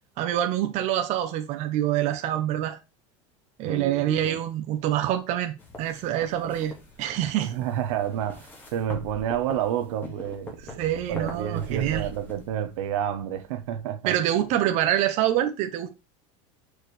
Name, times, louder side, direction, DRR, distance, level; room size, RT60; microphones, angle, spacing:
voice 1, 0.2-2.8 3.6-7.5 10.8-12.1 14.1-15.9, right 12 dB, 45° right, 0.8 m, -26 dB
voice 2, 3.7-4.4 7.4-10.8 11.1-14.2, right 10 dB, 80° right, 1.0 m, -30 dB
sound 1, 5.6-13.8, left 1 dB, 10° left, 2.0 m, -43 dB
6.2 x 4.8 x 3.2 m
supercardioid pair, 150°, 16 cm